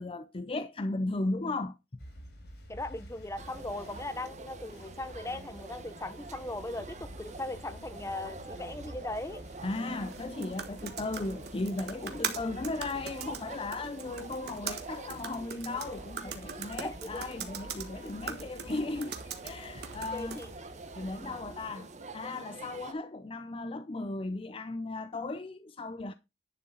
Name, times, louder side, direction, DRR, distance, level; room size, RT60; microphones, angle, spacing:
voice 1, 0.0-2.0 9.6-19.2 19.4-20.4 20.9-21.9 22.1-26.1, left 2 dB, 30° left, 0.5 m, -36 dB
sound 1, 2.0-21.7, equal, 70° left, 4.6 m, -50 dB
voice 2, 2.7-9.4 16.8-17.2 20.1-20.5, left 2 dB, 15° left, 0.9 m, -39 dB
sound 2, 3.4-22.9, right 3 dB, 40° right, 1.1 m, -47 dB
sound 3, 10.0-20.6, right 7 dB, 65° right, 1.4 m, -42 dB
10.5 x 6.5 x 3.9 m
head